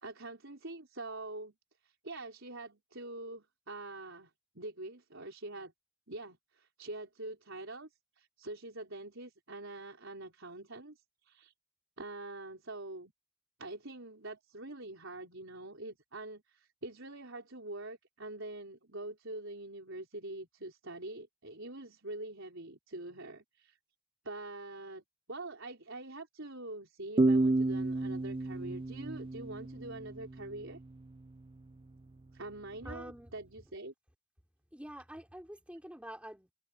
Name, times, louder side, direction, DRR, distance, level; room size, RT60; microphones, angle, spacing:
voice 1, 0.0-1.5 1.8-5.7 6.1-7.9 8.2-11.5 12.0-13.1 13.6-23.8 24.2-30.8 32.3-33.9, right 2 dB, 60° right, 4.9 m, -45 dB
sound 1, 27.2-30.6, right 2 dB, 25° right, 0.4 m, -30 dB
voice 2, 32.8-33.3 34.7-36.5, equal, 5° right, 4.1 m, -46 dB
head